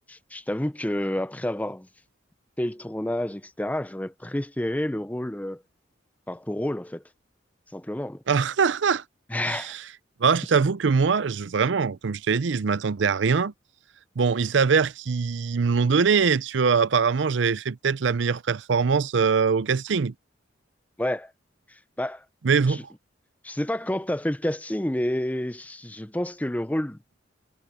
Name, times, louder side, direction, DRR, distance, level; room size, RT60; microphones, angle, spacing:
voice 1, 0.1-1.9 2.6-5.6 6.3-7.0 7.7-8.2 9.3-9.8 21.0-21.3 21.7-22.2 22.7-22.8 23.4-27.0, left 1 dB, 10° left, 0.6 m, -29 dB
voice 2, 8.3-9.0 9.4-9.8 10.2-13.5 14.2-20.1 22.4-22.9, right 5 dB, 70° right, 0.5 m, -22 dB
head